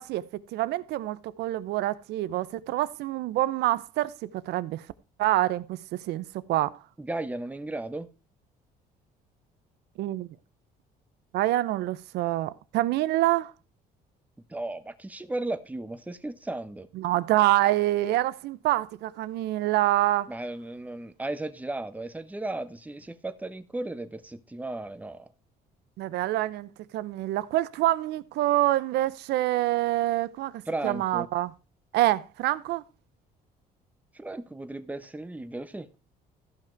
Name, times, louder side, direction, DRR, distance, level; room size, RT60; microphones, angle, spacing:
voice 1, 0.0-4.8 5.2-6.8 10.0-10.3 11.3-13.5 17.0-20.3 26.0-30.5 30.8-31.5 31.9-32.8, right 15 dB, 80° right, 0.7 m, -26 dB
voice 2, 7.0-8.1 14.5-16.9 20.3-25.3 30.7-31.3 34.1-35.9, right 2 dB, 10° right, 1.0 m, -35 dB
14.5 x 5.9 x 4.6 m
cardioid pair, 110°, 17 cm